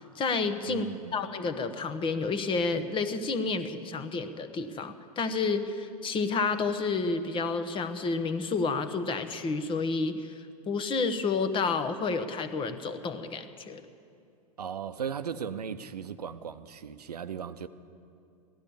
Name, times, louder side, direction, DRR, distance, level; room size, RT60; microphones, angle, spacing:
voice 1, 0.1-0.9 1.1-10.3 10.7-13.8, left 4 dB, 25° left, 10 dB, 1.0 m, -30 dB
voice 2, 0.7-1.2 14.6-17.7, right 7 dB, 90° right, 12 dB, 0.7 m, -37 dB
16.5 x 12.0 x 7.1 m, 2.5 s
hypercardioid pair, 100°, 20 cm